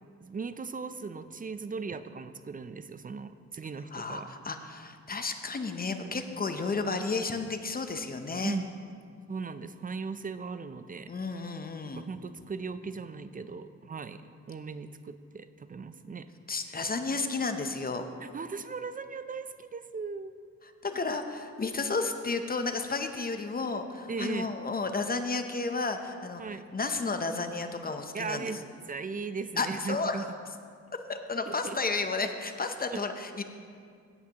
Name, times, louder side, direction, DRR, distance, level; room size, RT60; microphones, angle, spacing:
voice 1, 0.2-4.3 8.4-8.6 9.3-11.1 11.9-16.3 16.7-16.8 18.2-20.3 24.1-24.6 26.4-26.7 28.1-28.6 28.9-30.3 31.5-31.8 32.9-33.0, right 4 dB, 30° right, 11 dB, 0.4 m, -38 dB
voice 2, 3.9-8.6 11.1-12.1 16.5-18.0 20.6-28.6 29.6-30.3 31.1-33.4, left 3 dB, 30° left, 7 dB, 0.7 m, -32 dB
16.0 x 8.4 x 2.9 m, 2.2 s
cardioid pair, 100°, 30 cm